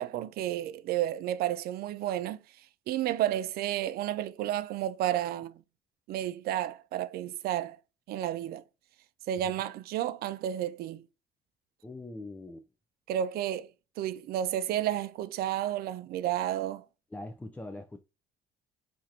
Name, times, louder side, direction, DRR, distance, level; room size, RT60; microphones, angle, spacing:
voice 1, 0.0-2.4 2.9-5.6 6.1-7.8 8.1-8.6 9.3-11.1 13.1-13.7 14.0-16.8, right 12 dB, 65° right, 0.4 m, -31 dB
voice 2, 11.8-12.7 17.1-18.0, left 2 dB, 10° left, 0.3 m, -42 dB
4.6 x 2.5 x 2.7 m
cardioid pair, 110°, 17 cm